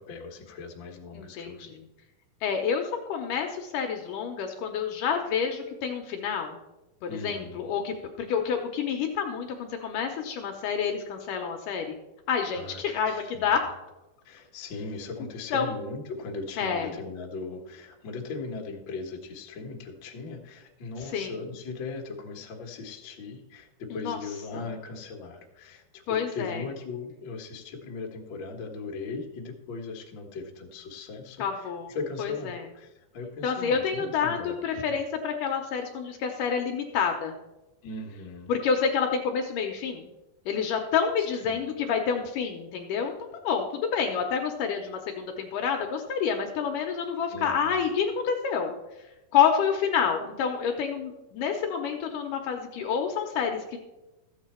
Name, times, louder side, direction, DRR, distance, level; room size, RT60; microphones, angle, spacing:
voice 1, 0.0-1.8 7.1-7.7 12.5-13.5 14.2-35.0 37.8-38.5 41.4-41.7 47.3-47.8, left 3 dB, 55° left, 1 dB, 1.4 m, -39 dB
voice 2, 1.1-1.8 2.4-6.6 7.0-12.0 12.3-13.6 15.5-15.7 16.6-16.9 21.1-21.4 23.9-24.2 26.1-26.6 31.4-32.7 33.4-37.4 38.5-40.1 40.5-43.1 43.4-48.7 49.3-53.8, left 6 dB, 75° left, 3 dB, 2.2 m, -28 dB
13.5 x 8.3 x 4.4 m, 1.0 s
omnidirectional pair, 4.4 m